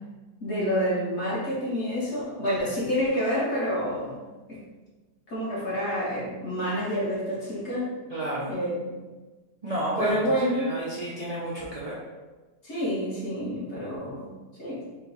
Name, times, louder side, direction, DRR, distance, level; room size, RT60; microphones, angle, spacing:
voice 1, 0.4-4.2 4.5-4.6 5.3-8.0 8.5-9.0 10.0-10.8 12.6-14.3 14.6-14.8, equal, 45° left, -7 dB, 1.5 m, -28 dB
voice 2, 8.1-8.6 9.6-10.2 10.5-12.0, right 1 dB, 80° right, -8 dB, 0.3 m, -31 dB
4.4 x 2.3 x 4.0 m, 1.2 s
omnidirectional pair, 1.7 m